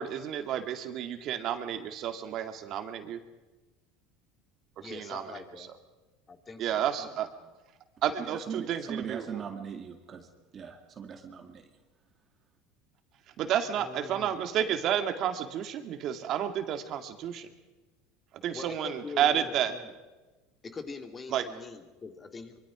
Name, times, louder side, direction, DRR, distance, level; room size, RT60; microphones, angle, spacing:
voice 1, 0.0-3.2 4.8-5.2 6.6-7.3 8.0-9.2 13.4-17.5 18.4-19.7 21.3-21.4, right 10 dB, 50° right, 6 dB, 2.2 m, -31 dB
voice 2, 4.8-5.7 6.3-7.5 13.7-14.5 18.5-19.9 20.7-22.6, left 4 dB, 25° left, 6 dB, 2.4 m, -44 dB
voice 3, 8.2-11.7, right 7 dB, 35° right, 4 dB, 2.1 m, -40 dB
24.0 x 23.5 x 5.1 m, 1.2 s
supercardioid pair, 110°, 0 cm